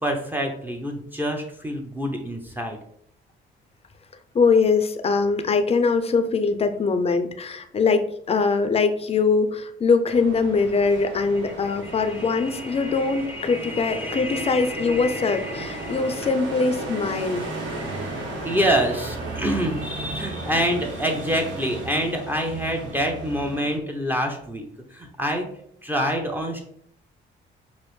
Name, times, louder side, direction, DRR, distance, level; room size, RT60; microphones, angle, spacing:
voice 1, 0.0-2.8 11.6-16.3 18.4-24.6 24.9-25.5 25.8-26.6, equal, 10° right, 2 dB, 0.6 m, -27 dB
voice 2, 4.3-17.4, left 4 dB, 30° left, 9 dB, 0.5 m, -22 dB
sound 1, 10.1-23.8, right 2 dB, 70° right, 1.1 m, -35 dB
5.0 x 2.0 x 3.1 m, 0.67 s
cardioid pair, 90°, 20 cm